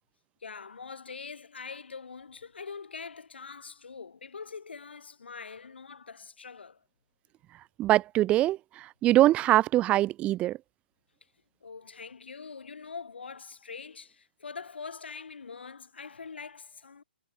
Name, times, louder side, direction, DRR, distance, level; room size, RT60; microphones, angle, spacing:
voice 1, 0.4-6.8 11.6-17.0, left 5 dB, 75° left, 7.7 m, -43 dB
voice 2, 7.8-8.6 9.0-10.6, right 14 dB, 20° right, 0.5 m, -22 dB
hypercardioid pair, 135°, 6 cm